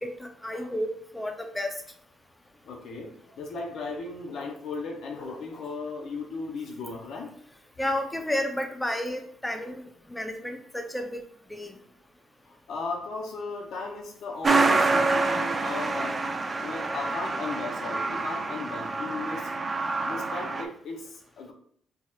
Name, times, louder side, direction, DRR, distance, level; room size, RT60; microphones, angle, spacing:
voice 1, 0.0-1.7 7.8-11.2 11.5-11.7, left 1 dB, 10° left, 5 dB, 0.6 m, -32 dB
voice 2, 2.6-7.3 12.5-16.2 16.6-19.5 20.0-21.5, left 3 dB, 75° left, 1 dB, 0.7 m, -36 dB
Truck, 14.4-20.6, right 3 dB, 30° right, 0.4 m, -27 dB
4.6 x 2.9 x 2.4 m, 0.65 s
cardioid pair, 90°, 0 cm